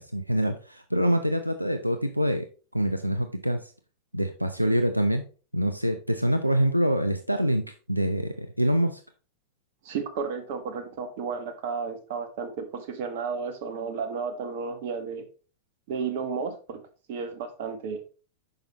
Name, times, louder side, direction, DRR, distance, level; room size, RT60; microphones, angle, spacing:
voice 1, 0.0-2.5 2.7-3.7 4.1-5.2 5.5-7.6 7.9-9.0, equal, 90° right, 7 dB, 0.5 m, -25 dB
voice 2, 9.8-15.2 15.9-16.8 17.1-18.0, right 5 dB, 50° right, 8 dB, 1.4 m, -33 dB
8.8 x 5.8 x 2.9 m, 0.36 s
figure-of-eight pair, 90°, 0 cm